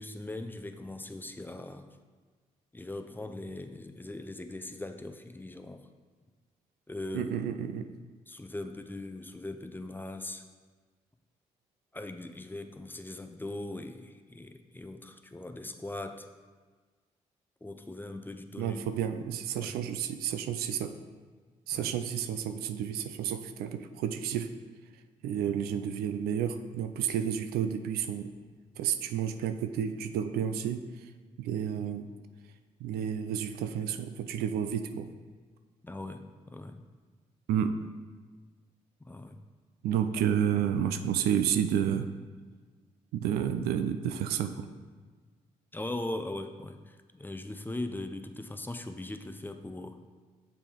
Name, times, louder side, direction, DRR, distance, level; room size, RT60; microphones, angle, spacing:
voice 1, 0.0-1.9 2.7-5.9 6.9-7.3 8.3-10.4 11.9-16.3 17.6-18.8 19.5-19.8 21.7-21.9 35.8-36.8 39.1-39.4 45.7-50.0, left 2 dB, 10° left, 7 dB, 0.6 m, -40 dB
voice 2, 7.1-7.9 18.6-21.0 21.7-24.5 25.2-28.3 28.8-30.8 31.4-32.1 32.8-35.1 37.5-37.8 39.8-42.1 43.1-44.7, right 9 dB, 80° right, 9 dB, 0.4 m, -31 dB
6.9 x 3.6 x 4.5 m, 1.4 s
supercardioid pair, 50°, 16 cm